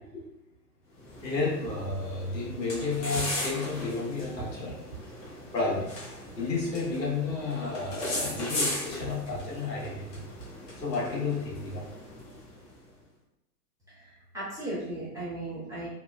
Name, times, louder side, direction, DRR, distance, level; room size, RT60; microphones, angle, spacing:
sound 1, 1.0-12.7, left 1 dB, 25° left, 0.6 m, -38 dB
voice 1, 1.2-4.8 5.5-5.9 6.3-10.2 10.8-11.8, left 3 dB, 85° left, -4 dB, 1.0 m, -31 dB
voice 2, 13.9-15.9, right 1 dB, 5° right, -11 dB, 0.7 m, -36 dB
2.8 x 2.1 x 2.2 m, 0.90 s
figure-of-eight pair, 110°, 49 cm